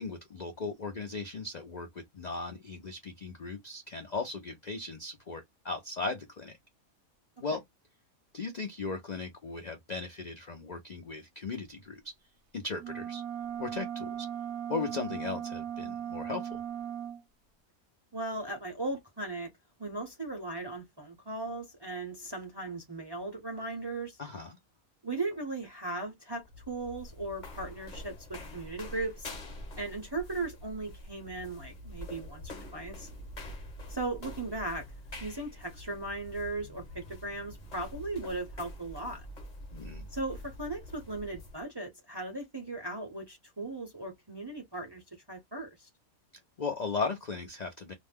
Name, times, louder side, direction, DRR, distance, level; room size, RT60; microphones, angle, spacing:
voice 1, 0.0-6.6 7.4-7.6 8.3-12.1 12.5-13.2 13.6-14.3 14.7-16.6 24.2-24.6 39.7-40.1 46.6-47.9, left 4 dB, 55° left, 0.4 m, -37 dB
sound 1, 12.8-17.2, right 9 dB, 80° right, 1.0 m, -38 dB
voice 2, 18.1-19.5 19.8-24.2 25.0-29.3 29.8-32.4 32.7-33.1 33.9-34.8 35.2-39.2 40.1-45.0 45.3-45.9, right 2 dB, 25° right, 0.6 m, -37 dB
sound 2, 26.3-41.6, left 1 dB, 35° left, 1.0 m, -46 dB
2.6 x 2.1 x 3.4 m
omnidirectional pair, 1.5 m